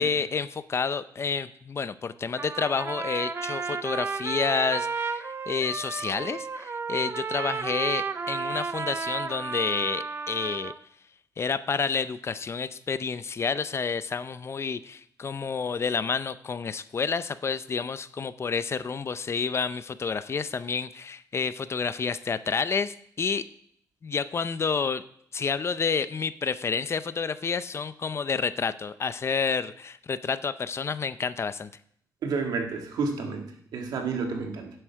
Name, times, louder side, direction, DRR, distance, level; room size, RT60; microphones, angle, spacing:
voice 1, 0.0-10.7 11.4-23.4 24.0-25.0 25.3-31.7, left 5 dB, 40° left, 14 dB, 0.5 m, -29 dB
Trumpet, 2.4-10.8, right 5 dB, 35° right, 0.6 m, -32 dB
voice 2, 32.2-34.7, right 4 dB, 80° right, 3 dB, 1.8 m, -30 dB
9.9 x 7.8 x 4.7 m, 0.66 s
cardioid pair, 90°, 7 cm